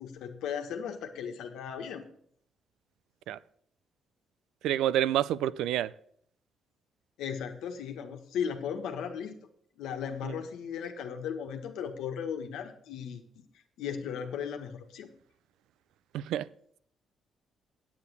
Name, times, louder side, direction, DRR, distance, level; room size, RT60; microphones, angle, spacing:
voice 1, 0.0-2.0 7.2-9.3 9.8-13.2 13.8-15.1, left 7 dB, 85° left, 1.4 m, -36 dB
voice 2, 4.6-5.9 10.2-10.3 16.1-16.5, right 12 dB, 85° right, 0.4 m, -28 dB
8.6 x 8.2 x 6.9 m
cardioid pair, 90°, 0 cm